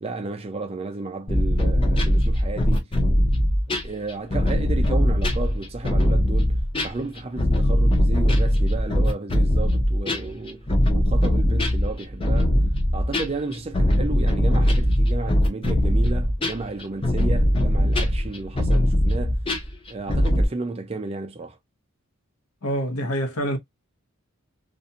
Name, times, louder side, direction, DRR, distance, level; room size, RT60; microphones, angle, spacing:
voice 1, 0.0-2.9 3.8-12.6 12.9-19.4 19.9-21.6, right 3 dB, 25° right, 0.4 m, -32 dB
sound 1, 1.3-20.5, equal, 25° left, 0.6 m, -21 dB
voice 2, 22.6-23.6, equal, 85° left, 0.8 m, -26 dB
2.5 x 2.2 x 2.7 m
head